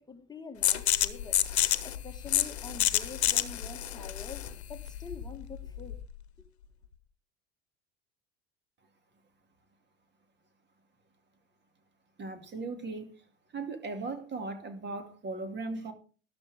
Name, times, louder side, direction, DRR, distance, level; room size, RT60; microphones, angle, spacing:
voice 1, 0.0-1.4 1.8-6.0 6.4-6.5, left 4 dB, 15° left, 1.6 m, -46 dB
sound 1, 0.6-6.1, left 12 dB, 80° left, 0.9 m, -29 dB
voice 2, 12.2-13.1 13.5-15.9, right 3 dB, 35° right, 2.5 m, -37 dB
13.0 x 12.0 x 3.5 m
hypercardioid pair, 75°, 32 cm